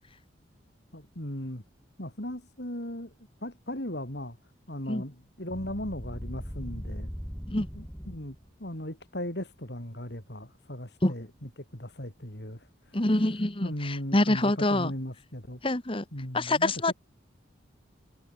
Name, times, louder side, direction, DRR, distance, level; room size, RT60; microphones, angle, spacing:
voice 1, 0.9-1.6 2.0-3.1 3.4-4.4 4.7-7.1 7.7-13.0 13.6-15.6 16.1-16.7, left 1 dB, 60° left, 4.6 m, -37 dB
sound 1, 5.5-8.5, equal, 5° left, 7.5 m, -39 dB
voice 2, 12.9-14.9 15.6-16.0 16.3-16.9, left 1 dB, 25° left, 1.5 m, -26 dB
head